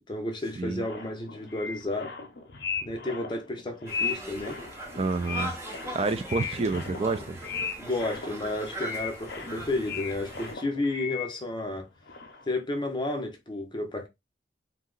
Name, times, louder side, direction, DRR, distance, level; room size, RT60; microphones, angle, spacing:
voice 1, 0.1-2.1 2.8-4.6 7.8-11.9 12.5-14.1, left 2 dB, 25° left, 0.6 m, -32 dB
sound 1, 0.8-11.8 12.0-12.6, left 5 dB, 75° left, 0.6 m, -37 dB
Conversation, 3.9-10.5, right 2 dB, 15° right, 0.7 m, -40 dB
voice 2, 5.0-5.6 5.9-7.4, right 3 dB, 35° right, 0.3 m, -28 dB
2.7 x 2.1 x 3.8 m
head